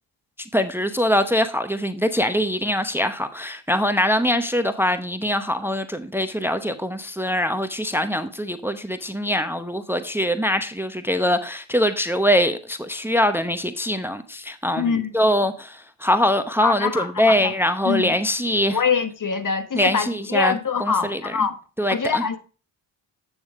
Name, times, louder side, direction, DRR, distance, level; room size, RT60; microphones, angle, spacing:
voice 1, 0.5-18.8 19.7-21.3 21.8-22.2, left 1 dB, 5° right, 0.9 m, -23 dB
voice 2, 14.8-15.2 16.6-17.5 17.8-18.1 18.7-21.6 21.9-22.4, left 5 dB, 40° left, 1.2 m, -24 dB
8.6 x 6.6 x 3.6 m
supercardioid pair, 45°, 49 cm